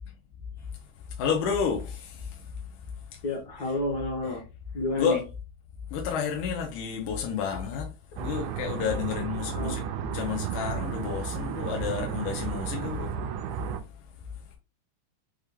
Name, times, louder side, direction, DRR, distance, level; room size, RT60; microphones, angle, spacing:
voice 1, 1.2-2.3 4.3-4.4 5.0-5.2 5.9-7.9 8.2-9.8 10.1-13.1, left 7 dB, 85° left, 2.2 m, -30 dB
voice 2, 3.2-4.4 4.7-5.2 9.5-9.8, left 2 dB, 65° left, 0.9 m, -30 dB
sound 1, 8.2-13.8, right 9 dB, 80° right, 1.9 m, -33 dB
6.3 x 2.2 x 3.4 m
omnidirectional pair, 3.4 m